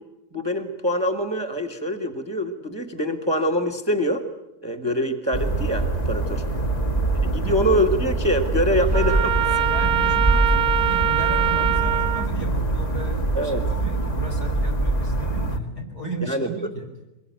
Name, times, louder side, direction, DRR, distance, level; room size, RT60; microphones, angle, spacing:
voice 1, 0.3-4.2 4.6-6.4 7.2-9.7 13.3-13.7 16.2-16.7, equal, 15° right, 5 dB, 1.5 m, -24 dB
sound 1, 5.3-15.6, right 2 dB, 25° left, 1.8 m, -24 dB
voice 2, 6.3-7.1 7.3-7.6 9.6-16.9, right 1 dB, 70° left, 2 dB, 5.7 m, -34 dB
Trumpet, 8.9-12.3, right 10 dB, 35° right, 1.0 m, -23 dB
23.5 x 21.5 x 9.1 m, 0.97 s
omnidirectional pair, 1.8 m